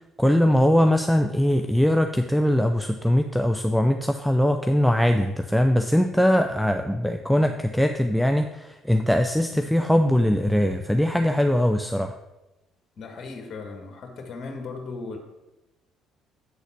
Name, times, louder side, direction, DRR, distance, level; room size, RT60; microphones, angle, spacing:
voice 1, 0.2-12.1, equal, ahead, 5 dB, 0.5 m, -21 dB
voice 2, 13.0-15.2, left 4 dB, 55° left, 3 dB, 1.5 m, -37 dB
8.4 x 4.0 x 5.8 m, 1.0 s
hypercardioid pair, 60°, 0 cm